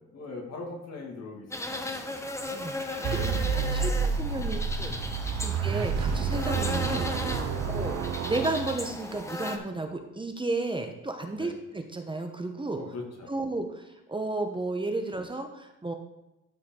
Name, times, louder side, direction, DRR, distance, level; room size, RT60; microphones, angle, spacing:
voice 1, 0.1-3.7 4.3-4.5 5.3-5.5 7.4-7.6 11.3-11.5 12.7-13.3, left 3 dB, 60° left, 1 dB, 2.2 m, -42 dB
sound 1, 1.5-9.6, left 1 dB, 10° left, 1.0 m, -36 dB
voice 2, 2.5-3.2 3.5-7.1 7.7-7.9 8.2-12.8 13.3-15.9, right 2 dB, 15° right, 5 dB, 1.0 m, -33 dB
sound 2, 3.0-9.2, right 6 dB, 60° right, 0.8 m, -29 dB
13.0 x 4.5 x 3.8 m, 0.95 s
cardioid pair, 90°, 30 cm